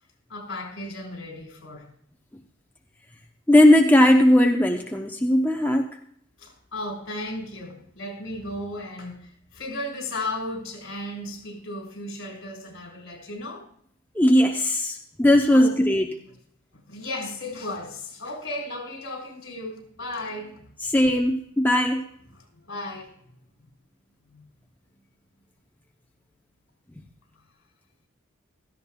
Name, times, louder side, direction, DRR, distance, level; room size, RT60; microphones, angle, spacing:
voice 1, 0.3-1.9 6.4-13.7 15.5-15.8 16.9-20.7 22.3-23.1 24.3-24.4, left 1 dB, 65° left, 4.1 m, -35 dB
voice 2, 3.5-5.9 14.1-16.1 20.8-22.0, left 1 dB, 10° left, 0.6 m, -18 dB
16.5 x 13.5 x 2.2 m
head